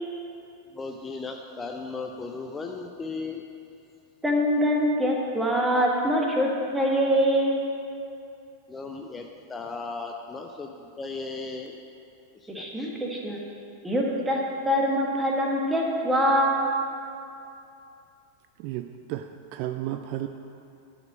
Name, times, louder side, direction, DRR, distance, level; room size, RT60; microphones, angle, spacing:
voice 1, 0.7-3.4 8.7-11.8 12.4-12.9, left 3 dB, 15° left, 3 dB, 0.5 m, -36 dB
voice 2, 4.2-7.7 12.5-13.4 13.8-16.6, equal, 10° right, -1 dB, 1.5 m, -24 dB
voice 3, 18.6-20.3, right 13 dB, 45° right, 8 dB, 0.3 m, -33 dB
10.5 x 5.2 x 6.1 m, 2.6 s
figure-of-eight pair, 90°, 0 cm